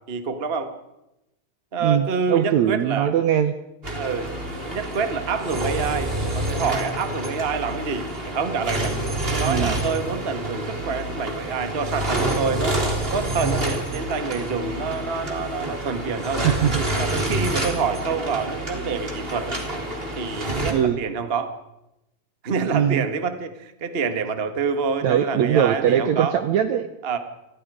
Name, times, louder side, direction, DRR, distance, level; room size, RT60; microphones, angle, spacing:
voice 1, 0.1-0.7 1.7-3.1 3.9-4.3 4.6-9.0 9.3-12.8 13.1-16.5 17.0-19.6 20.2-21.5 22.4-26.4 27.0-27.2, right 5 dB, 45° right, 8 dB, 0.7 m, -27 dB
voice 2, 1.8-3.5 9.4-9.8 16.4-16.8 20.7-21.0 22.7-23.0 25.0-26.9, right 10 dB, 75° right, 10 dB, 1.7 m, -21 dB
sound 1, 3.8-20.7, right 1 dB, 15° right, 3.0 m, -28 dB
28.5 x 20.5 x 5.0 m, 0.89 s
omnidirectional pair, 4.3 m